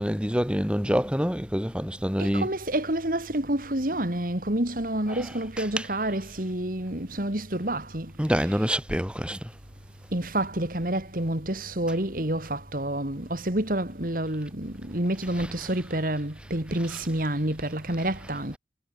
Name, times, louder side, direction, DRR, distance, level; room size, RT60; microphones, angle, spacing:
voice 1, 0.0-2.5 5.1-5.3 5.6-5.9 8.2-9.4 15.3-15.7, equal, 5° right, 6.6 m, -27 dB
voice 2, 2.2-8.1 8.4-8.7 10.1-18.6, right 1 dB, 50° right, 3.4 m, -28 dB
head